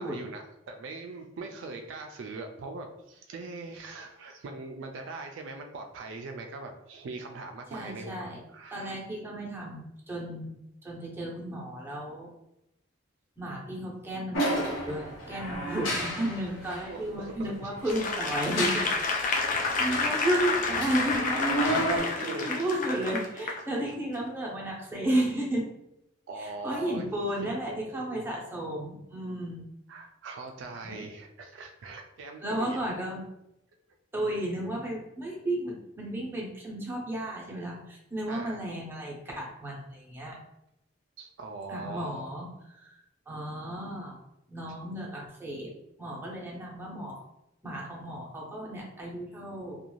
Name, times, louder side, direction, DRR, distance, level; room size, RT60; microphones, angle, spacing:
voice 1, 0.0-9.0 16.9-17.7 19.6-19.7 21.7-22.5 26.3-27.1 27.4-28.2 29.9-32.8 38.3-38.6 41.2-42.2, right 3 dB, 70° right, 4 dB, 0.3 m, -41 dB
voice 2, 7.7-8.4 8.7-12.3 13.4-18.9 19.3-21.3 21.9-25.7 26.4-29.6 30.8-31.0 32.4-33.2 34.1-40.4 41.7-42.5 42.8-42.9 43.3-44.2 44.5-45.7 46.0-47.2 47.6-49.8, right 1 dB, 10° right, -3 dB, 0.7 m, -33 dB
sound 1, 14.3-16.9 17.8-19.1 19.7-22.0, equal, 80° left, 0.9 m, -31 dB
Applause / Crowd, 17.9-23.6 24.1-24.3, left 4 dB, 40° left, 0.3 m, -30 dB
2.5 x 2.3 x 3.0 m, 0.85 s
head